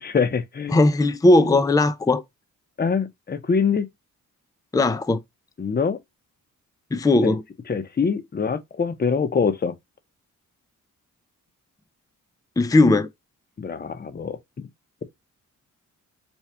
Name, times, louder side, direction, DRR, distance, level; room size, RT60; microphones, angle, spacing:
voice 1, 0.0-0.8 2.8-3.9 5.6-6.0 7.2-7.3 7.7-9.7 13.6-14.4, left 5 dB, 30° left, 0.8 m, -24 dB
voice 2, 0.7-2.2 4.7-5.2 6.9-7.4 12.6-13.1, left 2 dB, 10° left, 0.5 m, -18 dB
4.4 x 2.4 x 3.4 m
cardioid pair, 90°, 32 cm